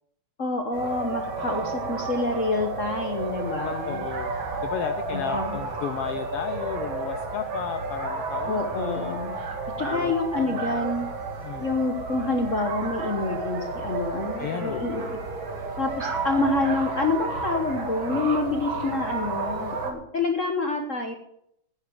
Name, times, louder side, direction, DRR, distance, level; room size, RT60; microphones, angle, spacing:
voice 1, 0.4-4.1 5.1-5.6 8.5-9.3 9.8-11.1 11.6-15.2 15.8-21.1, left 3 dB, 55° left, 5 dB, 0.8 m, -27 dB
sound 1, 0.7-19.9, right 3 dB, 45° right, 2.5 m, -32 dB
voice 2, 3.6-4.3 4.6-9.2 9.8-10.8 11.4-11.7 14.4-15.2, left 10 dB, 85° left, 10 dB, 1.3 m, -34 dB
10.0 x 9.5 x 7.6 m, 0.73 s
omnidirectional pair, 3.4 m